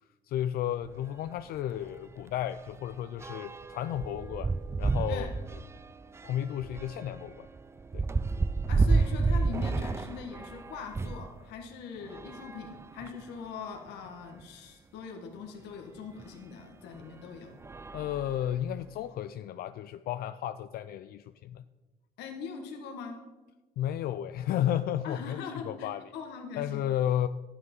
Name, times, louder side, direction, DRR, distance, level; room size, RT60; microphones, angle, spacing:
voice 1, 0.2-4.5 4.8-5.3 6.2-7.5 7.9-8.0 17.9-21.6 23.8-26.0 26.6-27.3, left 11 dB, 65° left, 11 dB, 0.4 m, -33 dB
sound 1, 0.8-1.0 1.4-1.6 1.8-11.3 12.0-13.4 14.1-14.2 14.4-14.5 16.2-16.3 16.9-17.2 17.6-18.9, right 3 dB, 15° right, 0.4 m, -31 dB
voice 2, 8.7-17.5 22.2-23.2 25.0-26.8, left 6 dB, 85° left, 3 dB, 1.6 m, -42 dB
12.0 x 9.7 x 5.4 m, 1.2 s
cardioid pair, 110°, 17 cm